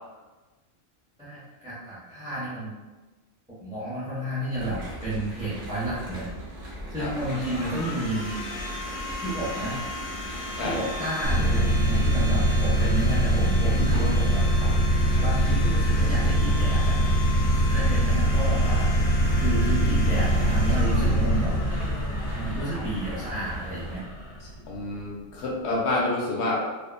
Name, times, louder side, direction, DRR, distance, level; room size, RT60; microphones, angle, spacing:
voice 1, 1.2-2.8 3.6-6.3 6.9-8.4 9.2-9.8 10.6-14.5 15.2-17.0 17.7-18.9 19.3-21.6 22.3-24.0, right 1 dB, 5° right, -11 dB, 0.4 m, -31 dB
sound 1, 4.5-24.0, equal, 40° right, 0.8 m, -39 dB
Domestic sounds home sounds, 6.2-25.1, left 1 dB, 85° left, 1.0 m, -37 dB
voice 2, 10.5-10.9 24.7-26.7, left 2 dB, 65° left, -3 dB, 0.8 m, -28 dB
sound 2, 11.2-24.5, equal, 70° right, 0.9 m, -23 dB
2.6 x 2.3 x 2.3 m, 1.2 s
omnidirectional pair, 1.3 m